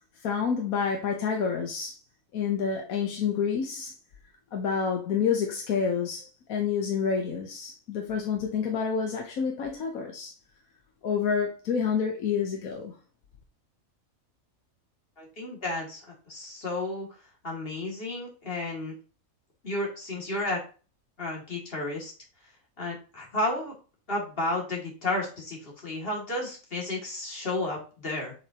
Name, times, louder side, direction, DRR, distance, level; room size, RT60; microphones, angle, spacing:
voice 1, 0.2-2.0 2.3-3.9 4.5-10.3 11.0-13.0, left 6 dB, 75° left, 1.3 m, -28 dB
voice 2, 15.2-17.1 17.4-18.9 19.6-20.6 21.2-22.1 22.8-23.7 24.1-28.3, left 2 dB, 40° left, 2.5 m, -32 dB
7.7 x 5.1 x 2.9 m
omnidirectional pair, 1.5 m